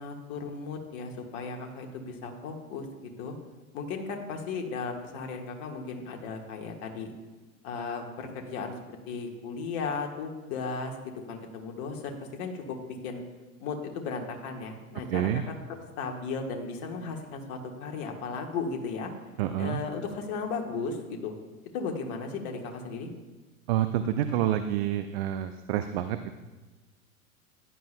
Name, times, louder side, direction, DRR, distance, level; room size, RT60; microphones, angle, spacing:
voice 1, 0.0-3.4 3.7-7.1 7.6-8.7 9.1-11.0 11.3-13.2 13.6-15.4 16.0-19.1 19.6-21.3 21.7-23.1, left 4 dB, 45° left, 2 dB, 1.6 m, -35 dB
voice 2, 15.1-15.4 19.4-19.8 23.7-26.4, right 11 dB, 45° right, 9 dB, 0.6 m, -28 dB
15.5 x 10.0 x 2.2 m, 1.2 s
figure-of-eight pair, 95°, 42 cm